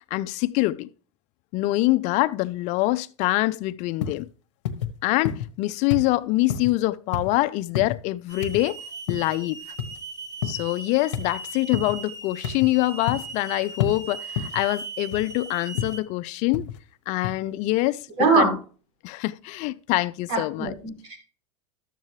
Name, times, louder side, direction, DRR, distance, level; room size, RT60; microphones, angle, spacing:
voice 1, 0.1-0.9 1.5-4.3 5.0-8.8 9.1-9.6 10.4-16.7 17.1-18.0 18.3-18.6 19.0-20.7, left 19 dB, 50° left, 0.4 m, -25 dB
sound 1, 4.0-4.2 4.6-4.9 5.2-5.6 5.9-6.1 6.5-6.7 7.1-7.4 7.7-8.0 8.4-8.6 9.1-9.3 9.8-10.0 10.4-10.7 11.1-11.3 11.7-11.9 12.4-12.7 13.1-13.4 13.8-14.0 14.4-14.6 15.1-15.3 15.8-16.0 16.5-16.8 17.2-17.3, left 8 dB, 85° left, 0.9 m, -29 dB
Hiss / Alarm, 8.3-16.0, right 3 dB, 20° right, 1.4 m, -38 dB
voice 2, 18.2-18.5 20.3-21.2, right 4 dB, 75° right, 5.5 m, -22 dB
12.5 x 7.3 x 3.1 m
supercardioid pair, 125°, 15 cm